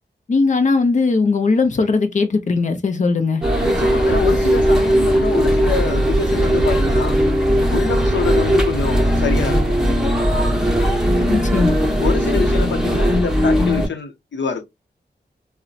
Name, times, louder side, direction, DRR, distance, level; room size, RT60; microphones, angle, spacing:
voice 1, 0.3-3.4 11.3-11.8, left 4 dB, 40° left, 0.6 m, -18 dB
sound 1, 3.4-13.9, equal, 5° right, 0.9 m, -18 dB
voice 2, 3.6-7.2 7.7-9.8 12.0-14.6, left 5 dB, 85° left, 0.7 m, -25 dB
3.9 x 2.1 x 2.3 m
wide cardioid pair, 65°, 18 cm